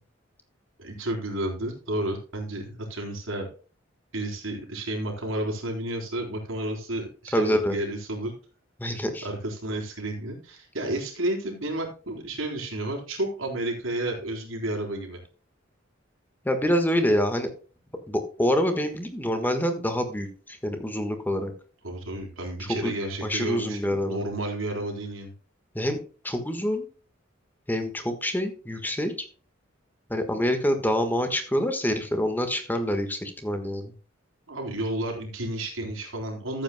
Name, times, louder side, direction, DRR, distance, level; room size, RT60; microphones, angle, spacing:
voice 1, 0.8-3.5 4.1-8.3 9.2-15.2 21.8-25.3 34.5-36.6, right 1 dB, 90° right, 1 dB, 3.7 m, -31 dB
voice 2, 7.3-7.8 8.8-9.3 16.4-17.5 18.1-20.3 20.6-21.5 22.8-22.9 23.2-24.2 25.7-26.0 26.2-26.9 27.7-29.1 30.1-33.9, equal, 10° left, 7 dB, 1.4 m, -26 dB
14.5 x 8.3 x 2.2 m, 0.37 s
head